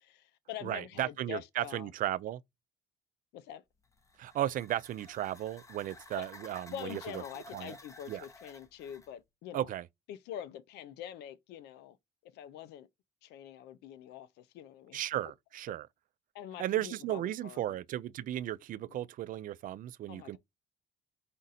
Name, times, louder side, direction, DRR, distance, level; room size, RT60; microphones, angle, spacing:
voice 1, 0.0-1.9 3.3-3.6 6.2-6.3 6.7-9.7 10.1-12.0 12.2-12.9 13.2-15.0 16.3-17.8 20.1-20.4, left 10 dB, 80° left, 0.5 m, -45 dB
voice 2, 0.6-2.4 4.2-7.2 7.5-7.7 8.1-8.2 9.5-9.9 14.9-15.9 16.6-20.4, right 13 dB, 55° right, 0.4 m, -35 dB
sound 1, 3.8-9.1, left 2 dB, 20° left, 0.8 m, -53 dB
5.1 x 2.5 x 4.0 m
cardioid pair, 110°, 17 cm